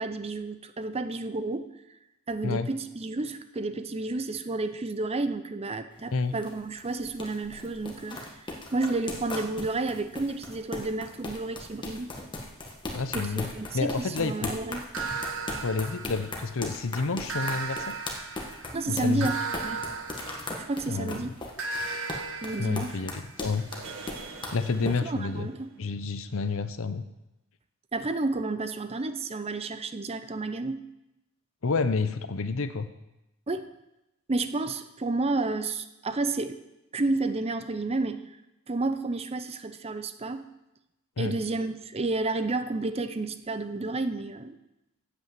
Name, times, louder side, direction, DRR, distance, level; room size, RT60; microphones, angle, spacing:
voice 1, 0.0-1.7 2.3-8.2 8.7-12.1 13.1-15.2 18.7-19.4 19.6-19.9 20.6-21.3 22.4-23.0 24.8-25.7 27.9-30.8 33.5-33.7 34.3-36.6 36.9-38.2 38.7-40.5 41.2-44.6, right 2 dB, 30° right, 10 dB, 0.6 m, -31 dB
sound 1, 5.9-25.0, left 2 dB, 20° left, 1.5 m, -38 dB
voice 2, 12.9-13.5 13.7-14.6 15.6-18.0 18.9-19.3 20.9-21.2 22.6-23.7 24.5-25.5 25.8-27.0 31.6-32.9 41.2-41.4, left 4 dB, 65° left, 12 dB, 0.7 m, -29 dB
sound 2, 14.9-16.6 17.3-21.0 21.6-25.3, right 4 dB, 65° right, 1.6 m, -36 dB
8.7 x 8.2 x 7.6 m, 0.93 s
head